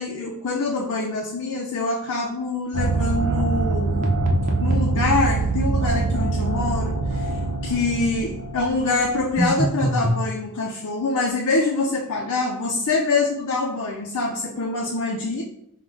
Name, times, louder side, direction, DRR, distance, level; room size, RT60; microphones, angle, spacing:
voice 1, 0.0-4.1 4.6-15.4, left 3 dB, 90° left, 1 dB, 0.5 m, -25 dB
sound 1, 2.7-9.5, right 3 dB, 90° right, 0.6 m, -24 dB
sound 2, 4.0-4.9 9.4-10.2, equal, 35° right, 0.6 m, -23 dB
4.6 x 2.1 x 3.8 m, 0.74 s
head